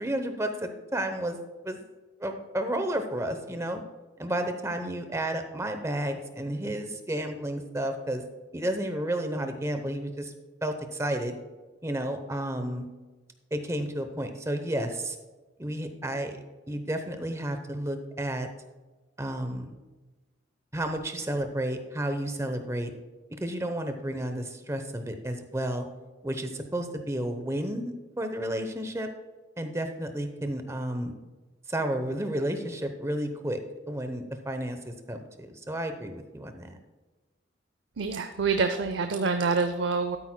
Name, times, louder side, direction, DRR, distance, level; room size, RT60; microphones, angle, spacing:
voice 1, 0.0-1.4 1.6-1.8 2.2-3.8 4.2-8.2 8.5-10.3 10.6-11.3 11.8-12.9 13.5-15.2 15.6-16.4 16.7-18.5 19.2-19.8 20.7-22.9 23.4-25.9 26.2-29.1 29.6-31.1 31.7-36.8, right 1 dB, 15° right, 7 dB, 0.8 m, -31 dB
voice 2, 38.0-40.2, right 4 dB, 80° right, 8 dB, 0.5 m, -26 dB
12.5 x 9.0 x 2.2 m, 1.2 s
head